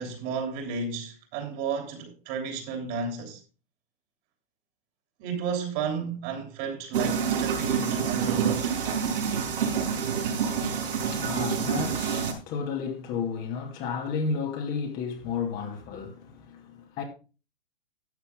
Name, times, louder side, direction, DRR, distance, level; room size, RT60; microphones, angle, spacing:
voice 1, 0.0-3.4 5.2-8.7, right 5 dB, 35° right, 3.2 m, -32 dB
sound 1, 6.9-12.3, right 7 dB, 70° right, 4.7 m, -27 dB
voice 2, 11.1-17.0, left 5 dB, 30° left, 2.4 m, -32 dB
13.0 x 8.3 x 3.7 m
hypercardioid pair, 145°, 29 cm